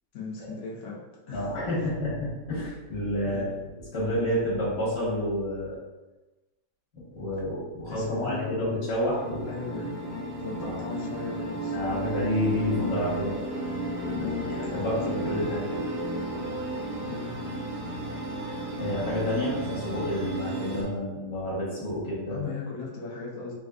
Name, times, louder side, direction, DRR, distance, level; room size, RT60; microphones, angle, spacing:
voice 1, 0.1-1.0 1.3-1.5 3.2-3.5 7.9-8.8 9.4-9.9 10.4-11.7 14.1-15.5 17.0-17.3 22.3-23.5, left 4 dB, 80° left, -4 dB, 0.6 m, -38 dB
voice 2, 1.3-5.8 7.1-9.5 10.6-10.8 11.7-13.4 14.7-15.7 18.8-22.4, left 1 dB, 40° left, -7 dB, 1.3 m, -29 dB
sound 1, 9.1-20.8, right 1 dB, 40° right, 0.5 m, -33 dB
3.3 x 2.5 x 2.3 m, 1.1 s
omnidirectional pair, 1.8 m